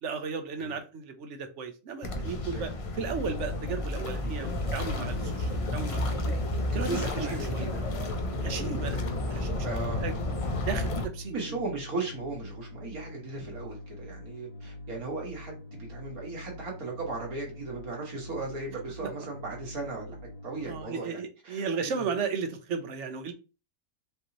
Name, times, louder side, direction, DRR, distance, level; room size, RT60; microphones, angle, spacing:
voice 1, 0.0-6.3 6.7-7.7 8.4-9.7 10.0-10.2 10.7-11.6 19.0-19.1 20.6-23.3, right 5 dB, 60° right, 6 dB, 1.0 m, -35 dB
sound 1, 2.0-11.1, left 1 dB, 60° left, 0.3 m, -31 dB
sound 2, 4.7-20.8, left 1 dB, 45° left, 1.4 m, -45 dB
voice 2, 6.7-7.8 8.5-8.8 9.6-10.2 11.3-20.2 20.4-22.1, right 3 dB, 85° right, -1 dB, 2.1 m, -37 dB
5.1 x 2.9 x 3.0 m, 0.32 s
omnidirectional pair, 1.5 m